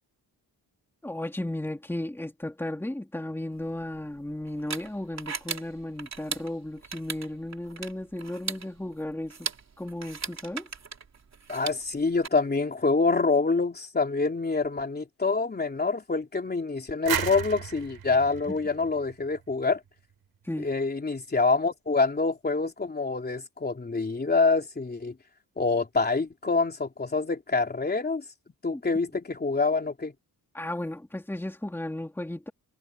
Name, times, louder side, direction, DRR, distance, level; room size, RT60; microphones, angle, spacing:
voice 1, 1.0-9.5 9.8-10.7 18.5-18.6 20.4-20.7 28.7-28.8 30.5-32.5, left 1 dB, 5° left, 2.8 m, -34 dB
sound 1, 3.6-12.3, right 5 dB, 45° right, 3.2 m, -39 dB
voice 2, 11.5-19.8 20.6-25.2 25.6-28.2 28.6-30.1, left 4 dB, 25° left, 3.3 m, -26 dB
sound 2, 17.1-19.8, right 9 dB, 70° right, 4.1 m, -34 dB
wide cardioid pair, 160°, 39 cm